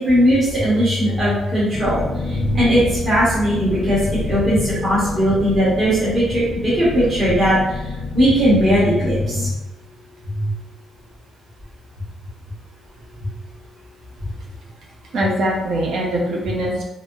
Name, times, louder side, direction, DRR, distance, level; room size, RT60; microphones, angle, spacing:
voice 1, 0.0-2.0 2.3-4.0 4.2-7.6 8.1-9.5 10.3-10.5, equal, 30° right, -10 dB, 1.2 m, -18 dB
sound 1, 1.7-9.5, left 3 dB, 25° left, 0.3 m, -28 dB
voice 2, 15.1-16.8, right 1 dB, 65° right, -1 dB, 0.7 m, -22 dB
3.3 x 2.6 x 2.6 m, 0.96 s
cardioid pair, 150°, 0 cm